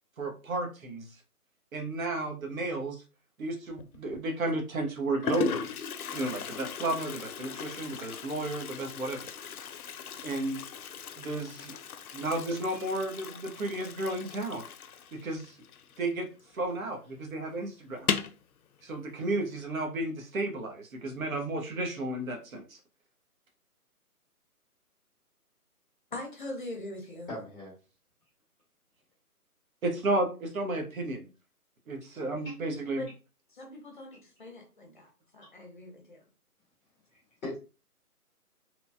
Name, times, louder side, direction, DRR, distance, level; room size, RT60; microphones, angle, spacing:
voice 1, 0.2-1.1 1.7-3.0 3.4-5.7 6.1-9.2 10.2-10.6 11.2-11.8 12.1-14.6 15.1-15.6 16.0-16.3 16.5-18.1 18.8-22.8 29.8-31.3 31.9-33.1, right 2 dB, 65° right, 3 dB, 0.9 m, -33 dB
Toilet flush, 3.7-4.2 4.9-5.0 5.2-16.5 16.8-16.9 17.2-17.3 17.9-18.4, left 7 dB, 70° left, 0.5 m, -38 dB
voice 2, 26.1-27.3 32.9-33.1 33.5-36.2, left 1 dB, 35° left, 2 dB, 0.7 m, -42 dB
voice 3, 27.3-27.7 32.0-32.1 32.4-32.5 37.1-37.6, left 1 dB, ahead, -9 dB, 0.8 m, -40 dB
3.0 x 2.2 x 2.6 m, 0.33 s
hypercardioid pair, 165°, 46 cm